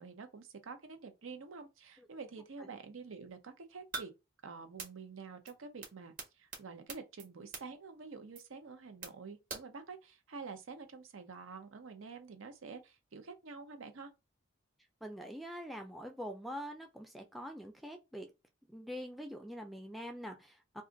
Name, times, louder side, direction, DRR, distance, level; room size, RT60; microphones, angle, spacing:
voice 1, 0.0-4.1 4.4-14.1, right 4 dB, 75° right, 0.6 m, -48 dB
sound 1, 3.9-4.0 4.8-4.9 5.5-5.6 5.8-5.9 6.2-6.3 6.5-6.6 6.9-7.3 7.5-7.6 8.3-8.4 9.0-9.1 9.5-9.6, right 4 dB, 40° right, 1.0 m, -41 dB
voice 2, 15.0-18.3 18.7-20.8, equal, ahead, 0.4 m, -44 dB
2.5 x 2.4 x 3.8 m
head